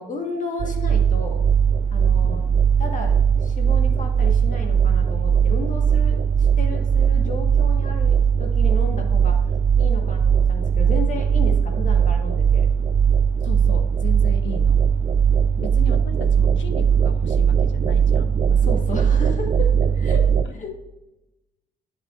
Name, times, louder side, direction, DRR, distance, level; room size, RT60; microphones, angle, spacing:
voice 1, 0.0-1.4 1.9-2.4 2.8-9.3 9.8-12.7 18.5-19.7 19.9-20.2 20.5-20.7, left 3 dB, 40° left, 2 dB, 1.4 m, -33 dB
sound 1, 0.6-20.4, right 7 dB, 35° right, 0.4 m, -19 dB
voice 2, 2.1-2.5 13.4-14.8 15.6-18.4, left 4 dB, 70° left, 8 dB, 0.9 m, -36 dB
10.5 x 5.4 x 2.5 m, 0.98 s
cardioid pair, 90°, 20 cm